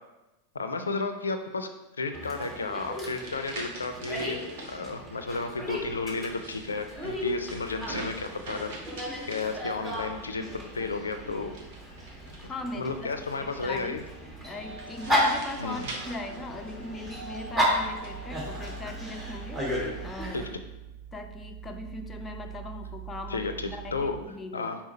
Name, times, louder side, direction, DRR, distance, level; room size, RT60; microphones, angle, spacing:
voice 1, 0.5-1.7 2.0-8.7 9.3-11.5 12.7-14.0 15.6-15.9 20.3-20.4 23.3-24.2 24.5-24.8, left 3 dB, 75° left, 8 dB, 0.5 m, -32 dB
Dog, 2.1-20.5, equal, 10° right, 1.5 m, -34 dB
sound 1, 2.7-4.8 6.2-10.1 11.5-12.8 14.6-17.0 17.8-18.8, right 2 dB, 55° right, 1.3 m, -44 dB
sound 2, 5.6-24.3, right 10 dB, 75° right, 1.2 m, -47 dB
voice 2, 12.4-14.0 14.4-20.4 21.1-24.7, left 2 dB, 15° left, 4 dB, 0.6 m, -40 dB
5.6 x 4.6 x 4.2 m, 1.0 s
figure-of-eight pair, 90°, 0 cm